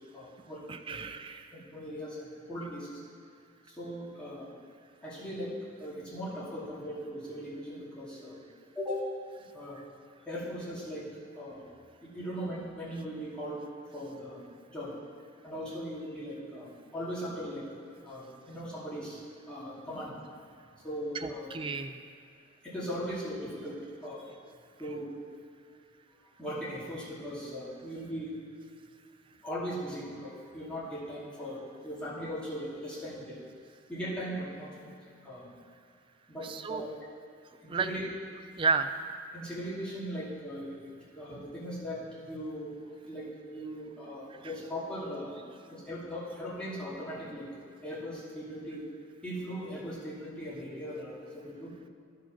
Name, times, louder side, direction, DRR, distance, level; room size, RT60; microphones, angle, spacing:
voice 1, 0.0-1.0 1.5-3.0 3.7-4.5 5.0-5.5 5.8-8.4 8.7-9.1 9.5-9.8 10.3-11.1 11.3-11.6 12.0-13.6 13.9-14.4 14.7-14.9 15.4-17.7 18.0-19.2 19.5-20.2 20.8-21.5 22.6-24.3 24.8-25.1 26.4-28.4 29.4-33.4 33.9-34.9 35.2-35.5 36.3-36.9 37.6-38.1 39.3-42.7 43.0-45.4 45.7-47.5 47.8-48.8 49.2-51.7, equal, 5° left, -10 dB, 2.5 m, -39 dB
voice 2, 0.7-1.5 21.2-22.1 36.4-36.8 37.7-37.9 38.6-38.9, right 4 dB, 25° right, 9 dB, 0.3 m, -32 dB
11.5 x 4.8 x 5.9 m, 2.4 s
head